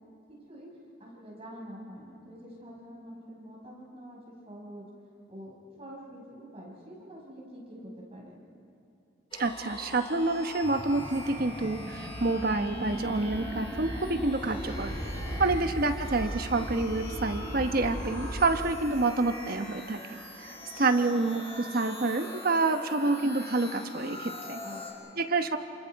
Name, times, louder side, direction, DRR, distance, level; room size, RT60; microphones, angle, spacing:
voice 1, 0.3-0.7 1.0-4.8 5.3-8.4 15.5-15.9 24.6-25.1, equal, 30° right, -3 dB, 5.5 m, -46 dB
sound 1, 9.3-24.9, left 1 dB, 30° left, 3.8 m, -43 dB
voice 2, 9.4-14.9 15.4-20.2 20.8-24.6 25.2-25.6, right 3 dB, 50° right, 7 dB, 1.1 m, -28 dB
sound 2, 10.6-18.5, equal, 10° right, 5.7 m, -37 dB
28.5 x 27.0 x 4.7 m, 2.8 s
head